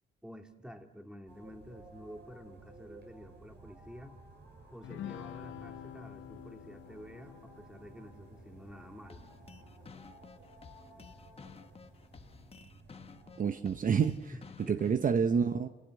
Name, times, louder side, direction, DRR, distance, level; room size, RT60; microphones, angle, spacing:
voice 1, 0.2-4.2 4.7-9.2 14.3-15.0, equal, 5° right, 4 dB, 2.5 m, -50 dB
sound 1, 1.3-13.5, right 2 dB, 60° right, 7.0 m, -55 dB
sound 2, 4.8-10.5, left 11 dB, 75° left, 0.9 m, -49 dB
sound 3, 9.1-15.1, left 5 dB, 30° left, 1.2 m, -53 dB
voice 2, 13.4-14.3 14.7-15.7, right 6 dB, 45° right, 9 dB, 0.9 m, -28 dB
29.0 x 15.5 x 8.1 m, 1.3 s
cardioid pair, 90°, 20 cm